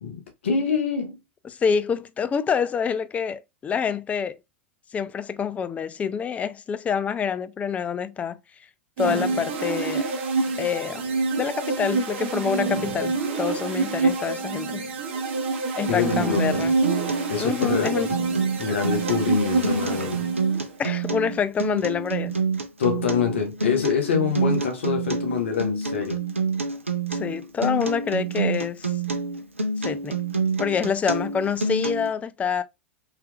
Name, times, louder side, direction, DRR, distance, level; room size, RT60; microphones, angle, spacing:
voice 1, 0.0-1.2 15.9-16.6 17.3-18.1 18.6-20.2 22.8-26.2, left 6 dB, 70° left, 0.9 m, -25 dB
voice 2, 1.4-4.4 4.9-8.4 9.0-10.1 10.6-11.0 11.4-14.9 15.8-16.8 17.4-18.1 20.8-22.4 27.1-28.9 29.8-30.2 30.6-32.6, left 7 dB, 20° left, 0.3 m, -26 dB
sound 1, 9.0-20.8, right 3 dB, 60° right, 0.9 m, -27 dB
Acoustic guitar, 16.1-32.1, right 4 dB, 90° right, 0.5 m, -28 dB
3.2 x 2.9 x 2.3 m
figure-of-eight pair, 90°, 7 cm